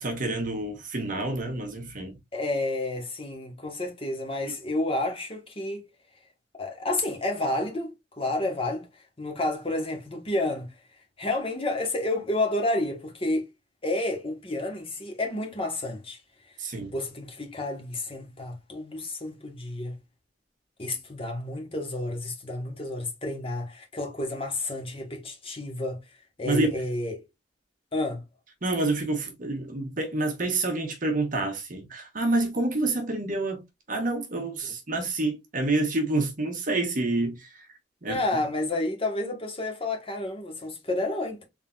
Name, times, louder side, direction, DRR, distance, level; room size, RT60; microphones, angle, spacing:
voice 1, 0.0-2.2 16.6-16.9 26.4-26.7 28.6-33.6 33.9-37.5 38.0-38.2, right 2 dB, 45° right, 1.2 m, -28 dB
voice 2, 2.3-5.9 6.6-8.9 9.2-10.7 11.2-13.5 13.8-16.2 16.9-20.0 20.8-26.0 26.4-27.2 27.9-28.2 34.6-34.7 38.1-41.5, left 2 dB, 30° left, 1.3 m, -30 dB
3.8 x 3.8 x 2.4 m
head